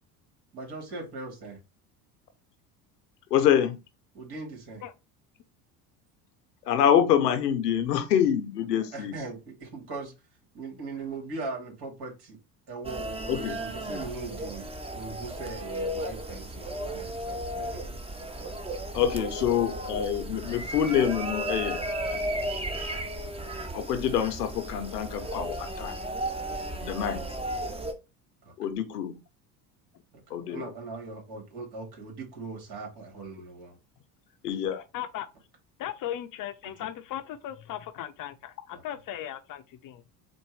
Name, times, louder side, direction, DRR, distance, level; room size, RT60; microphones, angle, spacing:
voice 1, 0.5-1.6 4.1-4.8 8.9-10.1 10.5-12.4 12.7-18.0 28.4-28.5 30.1-33.8 38.7-38.8, right 3 dB, 55° right, 2.5 m, -40 dB
voice 2, 3.3-3.8 6.7-9.1 13.3-13.6 18.9-21.8 23.7-26.0 26.8-27.3 28.6-29.1 30.3-30.7 34.4-34.8, left 9 dB, 90° left, 0.8 m, -26 dB
sound 1, 12.8-27.9, right 1 dB, 10° right, 0.9 m, -34 dB
voice 3, 34.7-35.3 35.8-40.0, left 11 dB, 45° left, 0.6 m, -37 dB
4.3 x 2.6 x 4.7 m
hypercardioid pair, 70°, 46 cm